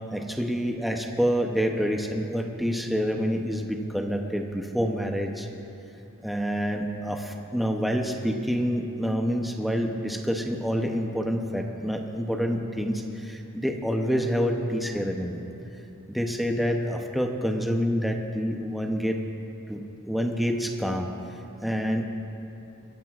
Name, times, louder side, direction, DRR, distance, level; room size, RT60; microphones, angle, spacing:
voice 1, 0.1-5.5 6.2-15.4 16.1-19.2 19.7-19.8 20.1-21.1 21.6-22.1, equal, ahead, 2 dB, 0.7 m, -27 dB
22.5 x 15.5 x 2.4 m, 2.9 s
head